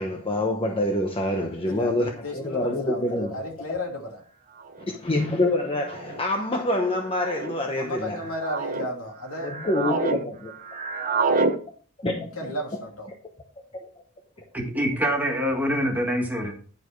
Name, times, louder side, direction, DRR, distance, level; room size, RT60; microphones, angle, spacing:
voice 1, 0.0-3.3 3.7-3.8 4.9-8.2 9.4-10.5 12.0-12.3, left 1 dB, 25° left, 0.9 m, -26 dB
voice 2, 1.7-4.2 7.7-9.5 12.3-13.1, left 1 dB, 75° left, 2.8 m, -34 dB
sound 1, 3.5-3.6 4.6-4.9 5.8-6.2 7.1-7.5 8.1-8.9 9.3-10.2 10.5-11.6, right 3 dB, 40° right, 0.9 m, -27 dB
voice 3, 14.5-16.5, equal, 10° right, 1.7 m, -25 dB
10.5 x 4.8 x 4.6 m
head